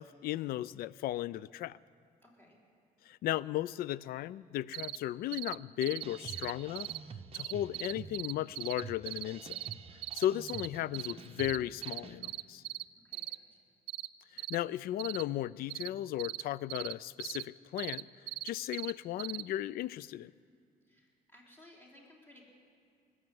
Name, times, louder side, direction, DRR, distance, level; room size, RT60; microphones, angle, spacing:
voice 1, 0.0-1.8 3.1-6.9 7.3-9.6 10.1-12.6 14.3-18.1 18.4-20.3, left 13 dB, 65° left, 21 dB, 0.4 m, -35 dB
voice 2, 2.2-2.6 13.0-13.6 20.9-22.5, left 1 dB, 10° left, -2 dB, 3.8 m, -59 dB
sound 1, 4.7-5.0 5.3-5.5 5.8-7.0 7.3-9.2 9.5-9.7 10.0-10.7 10.9-11.1 11.4-11.6 11.8-12.8 13.1-13.4 13.9-14.1 14.4-14.6 15.0-15.2 15.7-15.9 16.2-16.4 16.7-16.9 17.2-17.4 17.8-18.9 19.2-19.4, right 17 dB, 80° right, 0.5 m, -39 dB
sound 2, 6.0-12.3, right 5 dB, 35° right, 0.7 m, -49 dB
20.5 x 7.9 x 7.7 m, 2.4 s
cardioid pair, 110°, 17 cm